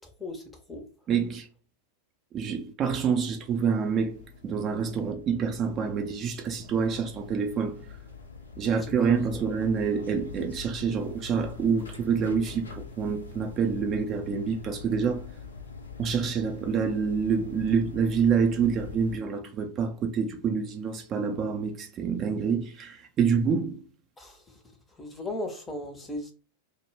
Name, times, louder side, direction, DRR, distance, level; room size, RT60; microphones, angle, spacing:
voice 1, 1.1-1.5 2.3-7.8 8.6-15.2 16.0-23.8, right 6 dB, 30° right, 0.4 m, -27 dB
sound 1, 3.8-19.2, left 5 dB, 70° left, 0.5 m, -44 dB
voice 2, 25.0-26.3, left 1 dB, 10° left, 0.6 m, -36 dB
2.1 x 2.1 x 3.1 m
figure-of-eight pair, 90°, 0 cm